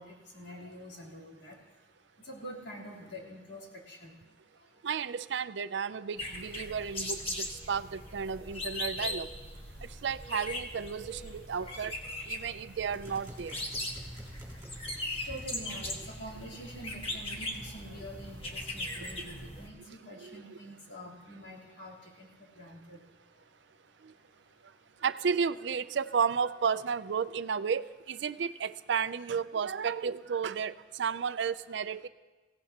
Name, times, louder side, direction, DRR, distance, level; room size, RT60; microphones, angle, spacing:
voice 1, 0.0-1.8 2.2-4.8 11.4-11.8 12.4-12.7 14.6-23.0 23.3-25.1 26.0-26.1 30.3-30.4, equal, 70° left, -4 dB, 3.7 m, -47 dB
voice 2, 4.8-9.3 9.8-12.0 12.3-13.5 20.2-20.4 24.0-24.1 25.0-32.1, right 6 dB, 80° right, 14 dB, 0.5 m, -33 dB
sound 1, 6.2-19.7, left 1 dB, 30° left, 1.6 m, -39 dB
sound 2, 12.9-19.2, equal, 15° right, 4.1 m, -50 dB
22.5 x 16.5 x 2.9 m, 1.2 s
head